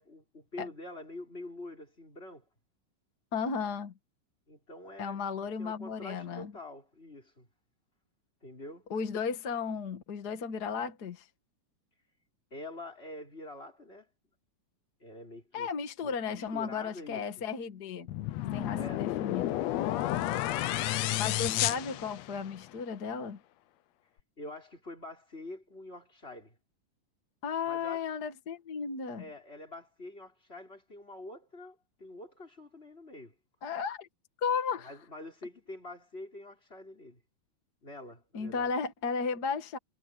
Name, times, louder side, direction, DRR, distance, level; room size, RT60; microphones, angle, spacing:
voice 1, 0.0-2.5 4.5-7.5 8.4-8.9 12.5-14.1 15.0-15.7 16.0-17.4 18.7-19.1 24.4-26.6 27.6-28.0 29.2-33.3 34.8-37.2 37.8-38.7, left 2 dB, 15° left, 5.3 m, -46 dB
voice 2, 3.3-3.9 5.0-6.5 8.9-11.3 15.5-18.2 18.5-19.6 21.2-23.4 27.4-29.2 33.6-34.1 34.4-34.9 38.3-39.8, left 5 dB, 45° left, 1.4 m, -34 dB
sound 1, 18.1-22.7, left 14 dB, 70° left, 1.7 m, -31 dB
omnidirectional pair, 3.8 m